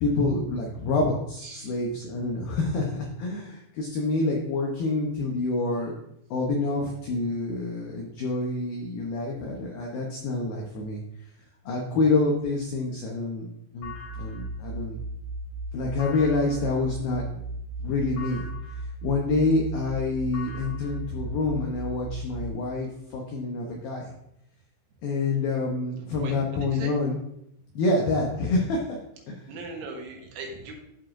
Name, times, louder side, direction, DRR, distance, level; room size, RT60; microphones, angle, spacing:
voice 1, 0.0-5.9 6.3-11.0 11.7-13.5 13.7-15.0 15.7-17.3 17.8-18.5 19.0-24.1 25.0-27.2 27.8-28.8 29.3-29.4, left 3 dB, 85° left, -1 dB, 2.1 m, -27 dB
voice 2, 1.4-1.8 26.2-26.4 26.7-26.9 29.5-30.7, right 3 dB, 75° right, 0 dB, 3.6 m, -39 dB
sound 1, 13.8-22.5, right 1 dB, 50° left, 2.9 m, -36 dB
13.0 x 4.9 x 2.6 m, 0.79 s
omnidirectional pair, 5.6 m